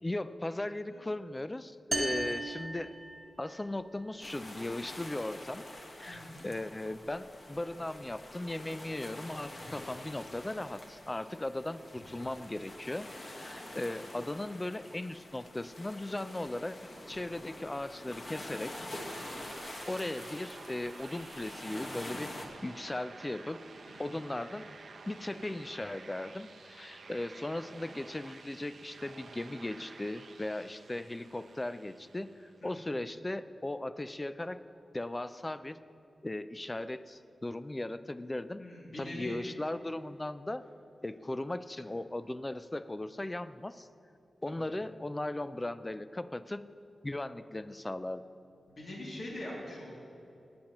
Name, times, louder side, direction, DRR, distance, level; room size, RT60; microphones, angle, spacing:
voice 1, 0.0-2.9 3.4-5.7 6.0-16.8 17.1-18.9 19.9-23.6 24.0-24.7 25.1-34.6 34.9-35.8 36.2-38.6 39.0-40.6 41.0-43.9 44.4-46.7 47.0-48.3, left 1 dB, 15° left, 13 dB, 0.3 m, -38 dB
sound 1, 1.9-3.6, right 1 dB, 25° right, 1.3 m, -36 dB
sound 2, 4.2-22.5, left 1 dB, 35° left, 1.1 m, -46 dB
voice 2, 6.1-6.4 23.9-24.1 32.6-32.7 38.6-39.4 44.5-44.6 48.7-49.9, left 1 dB, 55° left, -5 dB, 2.5 m, -43 dB
sound 3, 19.0-32.7, right 4 dB, 65° right, 0.7 m, -51 dB
20.0 x 8.7 x 3.0 m, 2.7 s
wide cardioid pair, 140°, 0 cm